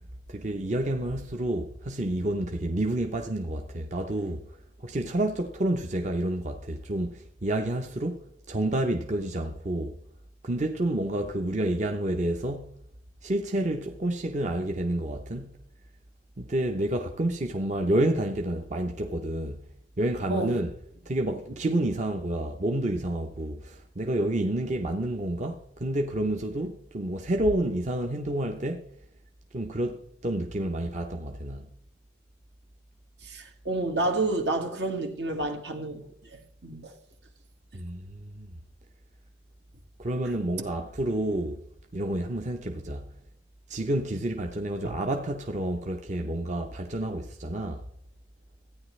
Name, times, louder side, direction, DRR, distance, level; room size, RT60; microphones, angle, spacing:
voice 1, 0.3-4.4 4.8-10.0 10.4-12.7 13.2-15.6 16.4-19.7 20.0-20.7 21.0-28.9 29.5-31.7 37.7-38.5 40.0-41.6 41.9-43.1 43.7-47.8, right 1 dB, 40° right, 0.7 m, -29 dB
voice 2, 33.3-36.0 36.3-36.9 44.8-44.9, right 2 dB, 75° right, 1.8 m, -29 dB
14.5 x 9.6 x 3.2 m
head